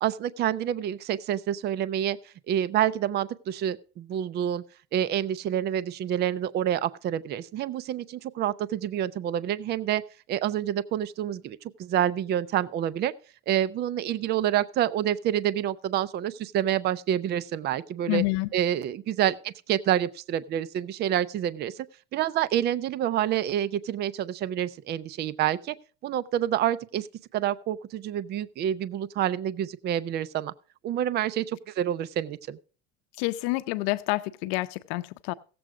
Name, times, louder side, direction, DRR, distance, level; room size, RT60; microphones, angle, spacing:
voice 1, 0.0-4.6 4.9-10.0 10.3-13.1 13.5-18.2 18.5-21.9 22.1-25.7 26.0-27.1 27.3-30.5 30.8-32.6, right 11 dB, 35° right, 0.5 m, -28 dB
voice 2, 18.1-18.5 33.2-35.3, left 21 dB, 80° left, 0.7 m, -28 dB
16.0 x 7.8 x 4.8 m
cardioid pair, 140°, 31 cm